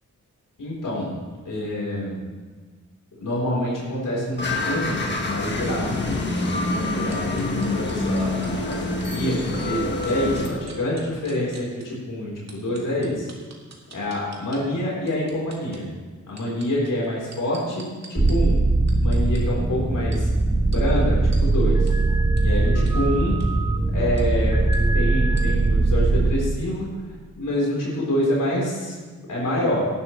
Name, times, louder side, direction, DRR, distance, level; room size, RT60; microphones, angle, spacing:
voice 1, 0.6-1.2 1.4-2.2 3.1-5.9 6.3-13.3 13.9-15.8 16.3-18.6 19.0-20.3 20.7-21.9 22.4-23.4 23.9-24.6 24.9-26.9 27.4-29.0 29.3-29.9, left 1 dB, 85° left, -5 dB, 4.4 m, -27 dB
sound 1, 4.4-10.5, left 2 dB, 35° left, 1.7 m, -26 dB
sound 2, 7.1-9.7 10.0-11.8 12.5-14.6 15.1-15.8 16.3-18.3 18.9-19.4 20.1-20.2 20.7-20.8 21.3-21.4 21.9-22.0 22.4-22.5 22.9-23.0 23.3-23.5 24.2-24.3 24.7-24.8 25.4-25.5, right 4 dB, 60° right, 2.1 m, -45 dB
sound 3, 18.2-26.4, right 2 dB, 10° right, 0.6 m, -20 dB
18.5 x 11.5 x 3.3 m, 1.4 s
wide cardioid pair, 150°, 31 cm